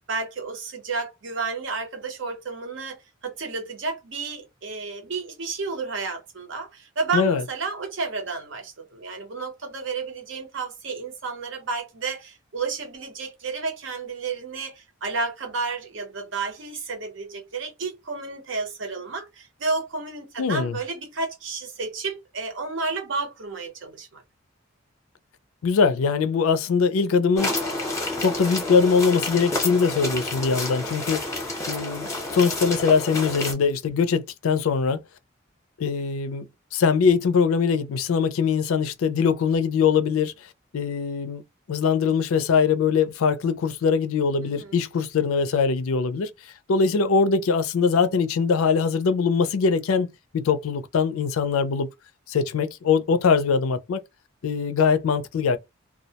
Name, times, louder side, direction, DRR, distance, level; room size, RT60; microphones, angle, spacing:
voice 1, 0.1-24.2 44.4-44.7, right 4 dB, 60° right, 0.8 m, -31 dB
voice 2, 20.4-20.8 25.6-27.5 28.2-31.2 31.7-35.0 35.8-36.5 36.7-40.3 40.7-41.4 41.7-50.1 50.3-51.9 52.3-54.0 54.4-55.6, left 5 dB, 90° left, 0.4 m, -22 dB
sound 1, 27.4-33.5, left 2 dB, 15° left, 0.7 m, -29 dB
2.2 x 2.0 x 2.8 m
head